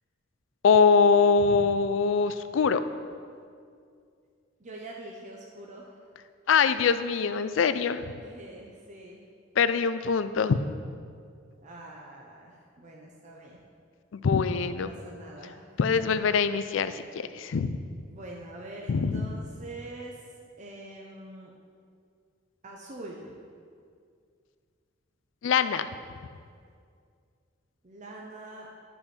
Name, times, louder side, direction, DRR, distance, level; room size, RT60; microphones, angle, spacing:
voice 1, 0.6-2.8 6.5-8.0 9.6-10.6 14.1-14.9 15.8-17.8 18.9-19.4 25.4-25.9, left 5 dB, 75° left, 12 dB, 0.4 m, -23 dB
voice 2, 4.6-6.0 8.2-9.2 11.6-13.6 14.6-15.6 16.0-16.2 18.1-20.2 20.6-21.5 22.6-23.3 27.8-28.7, right 2 dB, 40° right, -2 dB, 0.7 m, -44 dB
11.5 x 5.5 x 4.3 m, 2.2 s
head